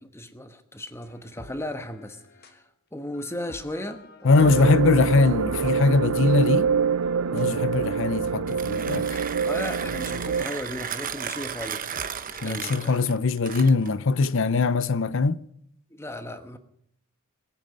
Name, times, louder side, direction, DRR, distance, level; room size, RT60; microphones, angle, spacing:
voice 1, 0.0-2.2 2.5-2.6 2.9-4.7 9.4-11.9 12.3-13.1 15.9-16.6, left 1 dB, 10° left, 1.2 m, -36 dB
sound 1, 1.0-2.6 3.1-8.3 8.6-12.7, left 2 dB, 50° left, 1.6 m, -49 dB
voice 2, 4.2-6.7 7.3-9.1 12.4-15.4, left 3 dB, 65° left, 0.6 m, -21 dB
sound 2, 4.4-10.4, right 6 dB, 85° right, 0.5 m, -25 dB
Mechanisms, 8.3-14.0, right 7 dB, 40° right, 0.9 m, -35 dB
21.0 x 8.8 x 6.5 m
head